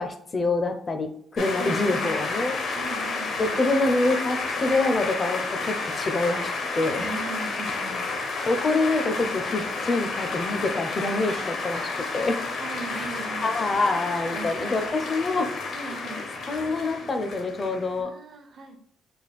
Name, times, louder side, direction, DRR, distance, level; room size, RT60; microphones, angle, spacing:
voice 1, 0.0-2.6 3.4-7.1 8.5-11.8 12.1-12.4 12.9-13.1 13.4-15.5 16.5-18.1, left 2 dB, 35° left, 7 dB, 0.6 m, -26 dB
sound 1, 1.4-18.0, left 3 dB, 65° left, 0.8 m, -31 dB
voice 2, 1.6-2.1 2.8-3.6 7.0-8.1 11.3-12.1 12.6-14.5 14.9-15.0 15.7-16.2 18.0-18.8, right 4 dB, 55° right, 5 dB, 0.8 m, -40 dB
3.4 x 2.2 x 4.1 m, 0.64 s
cardioid pair, 90°, 0 cm